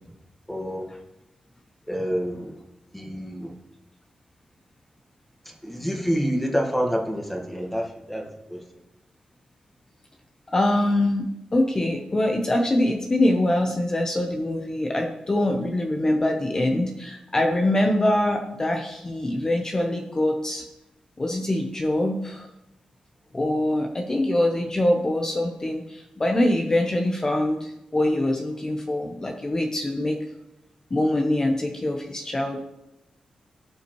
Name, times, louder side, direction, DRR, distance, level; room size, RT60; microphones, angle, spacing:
voice 1, 0.5-0.9 1.9-2.5 2.9-3.5 5.4-8.6, equal, 5° left, 1 dB, 1.5 m, -28 dB
voice 2, 10.5-20.7 21.2-22.5 23.3-30.2 30.9-32.6, left 1 dB, 25° left, 3 dB, 0.8 m, -24 dB
17.0 x 5.7 x 3.1 m, 0.89 s
wide cardioid pair, 135°, 2 cm